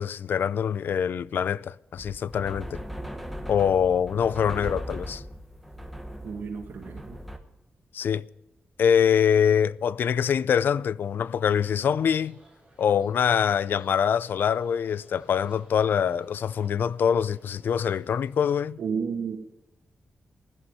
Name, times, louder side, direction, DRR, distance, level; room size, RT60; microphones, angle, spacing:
voice 1, 0.0-2.8 3.5-5.2 7.9-8.2 8.8-12.4 12.8-18.8, left 8 dB, 65° left, 0.4 m, -24 dB
sound 1, 2.0-7.4, equal, ahead, 1.2 m, -38 dB
voice 2, 6.2-7.2 18.8-19.4, right 6 dB, 75° right, 1.8 m, -32 dB
sound 2, 11.7-18.6, right 2 dB, 20° right, 7.5 m, -58 dB
16.0 x 11.5 x 5.5 m
wide cardioid pair, 165°, 4 cm